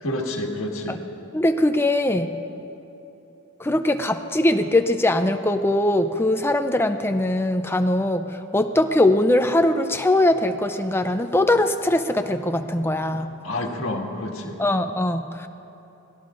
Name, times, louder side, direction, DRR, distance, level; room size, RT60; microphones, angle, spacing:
voice 1, 0.0-1.0 13.4-14.6, left 1 dB, 60° left, 0 dB, 1.8 m, -28 dB
voice 2, 1.3-2.3 3.6-8.3 8.5-13.3 14.6-15.5, left 1 dB, 10° left, 8 dB, 0.5 m, -21 dB
28.5 x 19.5 x 2.5 m, 2.9 s
head